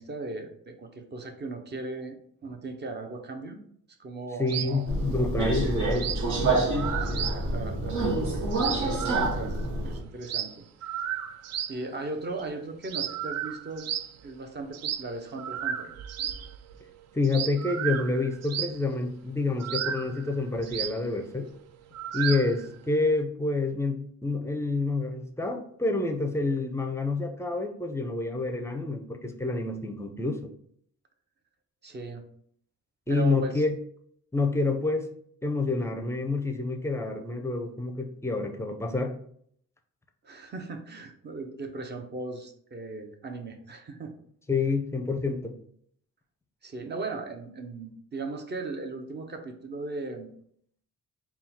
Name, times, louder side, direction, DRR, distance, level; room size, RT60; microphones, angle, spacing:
voice 1, 0.0-3.6 4.0-4.9 7.0-8.1 8.5-10.5 10.8-11.1 11.7-13.9 14.2-15.9 31.8-32.2 33.1-33.6 40.2-44.1 46.6-50.3, right 3 dB, 35° right, 4 dB, 0.8 m, -38 dB
voice 2, 4.4-6.1 17.1-21.5 22.1-30.5 33.1-33.7 34.3-35.1 35.4-39.1 44.5-45.6, left 3 dB, 10° left, 5 dB, 0.5 m, -28 dB
sound 1, 4.5-4.8 5.1-5.2 5.5-5.6 5.8-6.3 6.6-7.5 7.7-7.8 8.0-8.1 8.4-9.7 10.0-11.8 12.2-12.4 12.8-14.2 14.7-15.1 15.4-17.0 17.2-18.9 19.6-22.7, right 9 dB, 60° right, 0.4 m, -34 dB
Subway metro underground, 4.9-10.0, right 2 dB, 75° right, 1.0 m, -27 dB
3.7 x 2.3 x 4.2 m, 0.65 s
cardioid pair, 90°, 30 cm